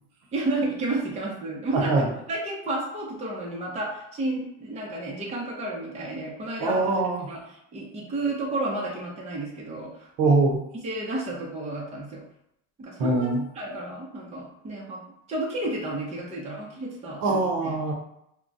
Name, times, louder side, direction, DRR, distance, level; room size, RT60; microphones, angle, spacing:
voice 1, 0.3-7.0 7.3-7.4 7.7-10.1 10.8-12.2 12.8-13.3 13.6-15.0 15.3-17.8, right 2 dB, 20° right, -3 dB, 0.7 m, -31 dB
voice 2, 1.7-2.1 6.6-7.3 10.2-10.6 13.0-13.4 17.2-17.9, right 3 dB, 65° right, 0 dB, 0.8 m, -23 dB
2.2 x 2.2 x 3.9 m, 0.78 s
supercardioid pair, 130°, 35 cm